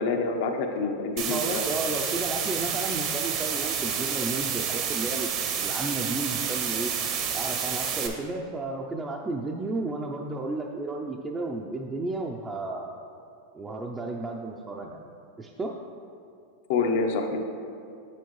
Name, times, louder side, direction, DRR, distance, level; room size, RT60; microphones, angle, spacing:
voice 1, 0.0-1.7 16.7-17.4, left 4 dB, 65° left, 4 dB, 0.8 m, -27 dB
voice 2, 1.2-6.9 7.3-13.0 13.5-15.1 15.4-15.7, right 2 dB, 15° right, -1 dB, 0.4 m, -33 dB
sound 1, 1.2-8.1, right 7 dB, 45° right, 0.7 m, -29 dB
7.2 x 7.0 x 3.1 m, 2.4 s
supercardioid pair, 130°, 0 cm